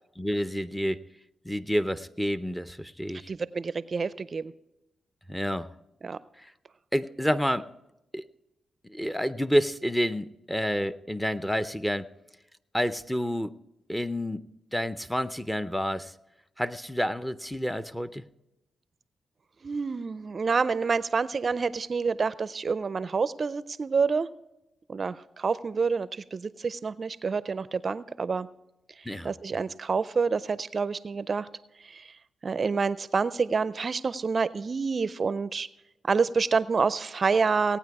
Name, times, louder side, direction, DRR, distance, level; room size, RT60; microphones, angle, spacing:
voice 1, 0.2-1.0 1.4-3.3 5.3-5.7 6.4-6.5 6.9-7.7 8.1-8.2 8.9-12.1 12.7-13.5 13.9-14.4 14.7-16.1 16.6-18.2 29.1-29.3, equal, 5° left, 12 dB, 0.5 m, -29 dB
voice 2, 3.3-4.5 6.0-6.2 19.6-24.3 24.9-28.5 29.2-31.5 31.9-32.0 32.4-35.7 36.0-37.8, right 5 dB, 45° right, 16 dB, 0.4 m, -28 dB
18.0 x 9.1 x 4.7 m, 0.93 s
cardioid pair, 75°, 0 cm